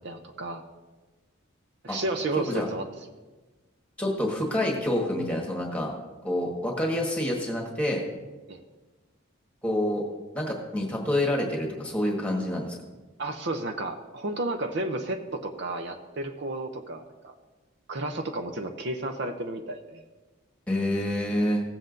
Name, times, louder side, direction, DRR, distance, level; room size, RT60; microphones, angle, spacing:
voice 1, 0.0-0.6 1.8-2.9 8.5-8.6 13.2-17.3 17.9-20.0, right 2 dB, 55° right, 5 dB, 0.6 m, -32 dB
voice 2, 4.0-5.9 6.2-8.0 9.6-10.0 10.3-12.7 20.7-21.6, left 1 dB, 5° left, -1 dB, 1.4 m, -27 dB
16.5 x 7.7 x 2.6 m, 1.2 s
head